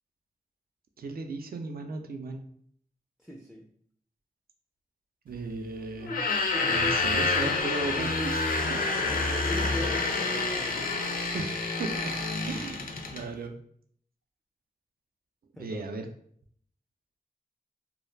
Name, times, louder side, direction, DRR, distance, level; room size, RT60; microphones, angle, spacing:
voice 1, 1.0-2.5 5.3-6.2 6.7-8.4 8.7-8.9 11.3-12.1 12.4-13.6 15.6-16.1, right 3 dB, 70° right, 5 dB, 0.4 m, -36 dB
voice 2, 3.2-3.7 9.1-10.9 15.6-15.8, left 1 dB, ahead, 1 dB, 0.3 m, -40 dB
sound 1, 6.0-13.3, left 3 dB, 65° left, 0.4 m, -28 dB
2.3 x 2.0 x 3.1 m, 0.63 s
cardioid pair, 55°, 16 cm